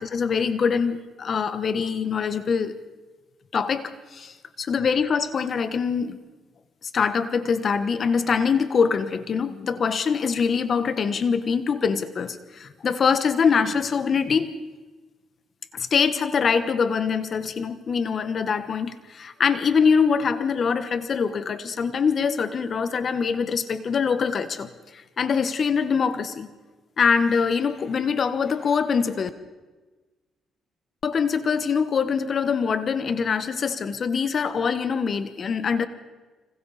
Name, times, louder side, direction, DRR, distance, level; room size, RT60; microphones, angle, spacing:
voice 1, 0.0-2.8 3.5-6.2 6.8-14.5 15.7-26.5 27.0-29.3 31.0-35.9, left 6 dB, 50° left, 11 dB, 1.3 m, -24 dB
29.5 x 26.0 x 4.2 m, 1.3 s
cardioid pair, 90°, 0 cm